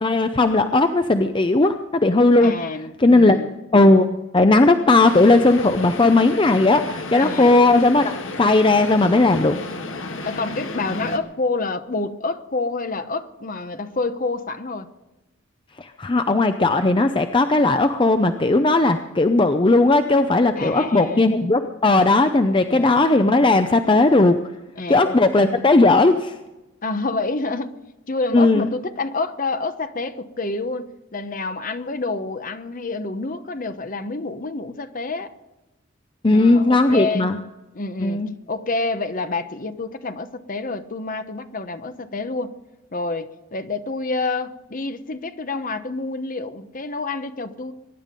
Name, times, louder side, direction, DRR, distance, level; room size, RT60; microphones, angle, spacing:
voice 1, 0.0-2.6 3.0-3.4 3.7-8.1 8.4-9.6 15.8-24.4 24.9-26.3 28.3-28.7 36.2-37.4 38.0-38.3, left 2 dB, 25° left, 8 dB, 0.6 m, -17 dB
voice 2, 2.4-3.5 7.2-7.6 10.2-14.9 20.6-21.2 22.7-23.1 24.8-25.6 26.8-27.7 28.1-35.3 36.3-37.3 37.7-42.5 42.9-47.7, left 3 dB, 45° left, 10 dB, 1.0 m, -28 dB
sound 1, 4.9-11.2, left 2 dB, 80° left, 1.7 m, -32 dB
23.0 x 11.0 x 5.3 m, 1.0 s
head